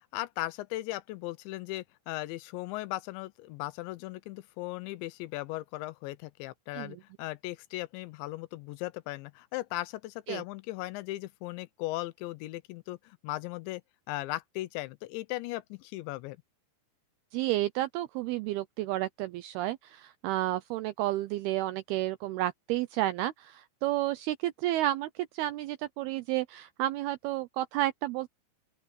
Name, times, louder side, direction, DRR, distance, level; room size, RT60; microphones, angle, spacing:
voice 1, 0.1-13.8 14.1-16.4, left 18 dB, 85° left, 3.1 m, -37 dB
voice 2, 17.3-28.3, right 15 dB, 85° right, 2.2 m, -31 dB
open air
omnidirectional pair, 5.2 m